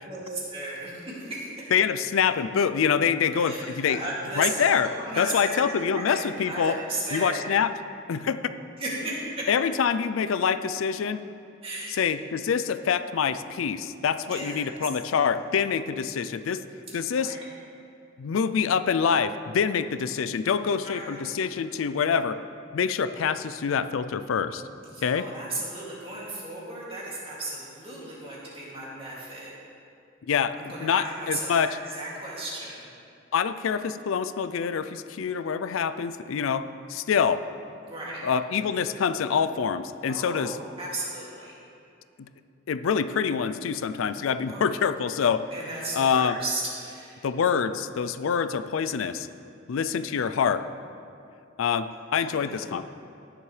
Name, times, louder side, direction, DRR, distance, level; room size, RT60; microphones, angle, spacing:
voice 1, 0.0-1.7 3.4-5.6 5.9-7.4 8.8-9.4 11.6-12.1 14.3-14.7 17.1-17.4 20.8-21.2 24.8-29.5 30.6-32.9 37.9-38.2 40.1-41.5 44.5-44.7 45.5-47.3 52.2-52.7, right 2 dB, 30° right, -6 dB, 2.5 m, -35 dB
voice 2, 1.7-4.0 4.4-4.9 5.2-6.8 7.1-7.7 8.1-8.4 9.5-11.2 12.0-16.6 16.9-17.4 18.2-22.4 22.7-24.6 25.0-25.2 30.3-30.6 30.8-31.7 33.3-36.6 36.9-37.4 38.2-40.6 42.7-45.4 45.9-46.4 47.2-49.3 49.7-50.7 51.6-52.8, left 7 dB, 90° left, 12 dB, 0.4 m, -25 dB
16.5 x 7.4 x 3.3 m, 2.5 s
head